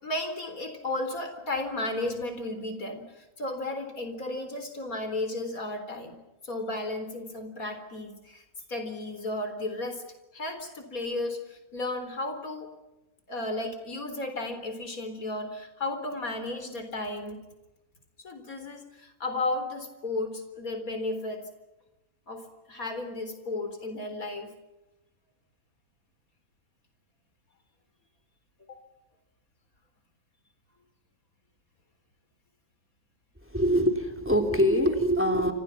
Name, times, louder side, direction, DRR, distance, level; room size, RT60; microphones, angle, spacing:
voice 1, 0.0-6.2 6.4-8.4 8.7-10.0 10.3-12.7 13.3-17.4 18.2-21.5 22.3-24.5 28.7-28.8, left 2 dB, 75° left, 7 dB, 4.4 m, -34 dB
voice 2, 33.5-35.5, equal, 10° right, 5 dB, 3.3 m, -24 dB
29.5 x 26.5 x 5.9 m, 1.0 s
omnidirectional pair, 1.5 m